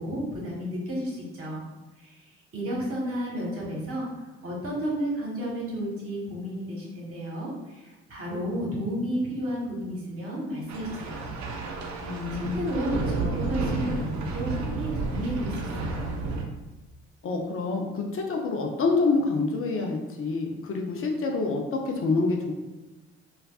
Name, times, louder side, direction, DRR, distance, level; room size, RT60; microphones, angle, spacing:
voice 1, 0.0-1.6 2.0-11.3 12.0-16.2, equal, 45° right, -3 dB, 1.3 m, -32 dB
sound 1, 10.7-16.4, right 3 dB, 60° right, 0.6 m, -31 dB
voice 2, 12.0-12.6 17.2-22.5, left 3 dB, 45° left, 1 dB, 0.6 m, -27 dB
3.3 x 2.4 x 2.3 m, 1.1 s
hypercardioid pair, 55°, 31 cm